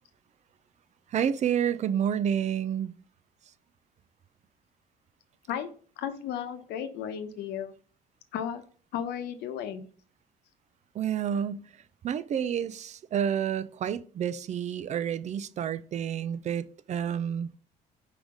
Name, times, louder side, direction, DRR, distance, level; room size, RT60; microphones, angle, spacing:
voice 1, 1.1-2.9 10.9-11.7 12.0-17.5, right 8 dB, 45° right, 0.4 m, -29 dB
voice 2, 5.5-7.7 8.3-8.6 8.9-9.9, left 9 dB, 80° left, 0.9 m, -34 dB
4.8 x 3.9 x 5.0 m
cardioid pair, 110°, 17 cm